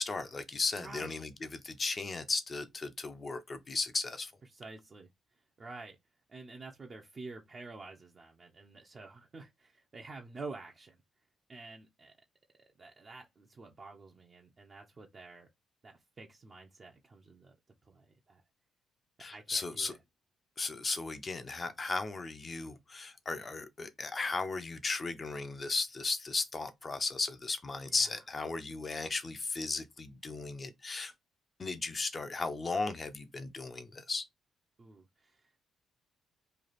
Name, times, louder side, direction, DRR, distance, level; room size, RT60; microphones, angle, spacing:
voice 1, 0.0-4.3 19.2-19.9 20.6-31.1 31.6-34.2, left 3 dB, 30° left, 0.6 m, -36 dB
voice 2, 0.7-1.1 4.5-5.1 5.6-6.0 6.3-11.0 11.5-12.1 12.8-15.5 15.8-17.6 17.8-18.4 19.2-20.0 27.8-28.2 34.8-35.6, right 3 dB, 35° right, 0.7 m, -49 dB
3.2 x 2.4 x 4.0 m
cardioid pair, 90°, 0 cm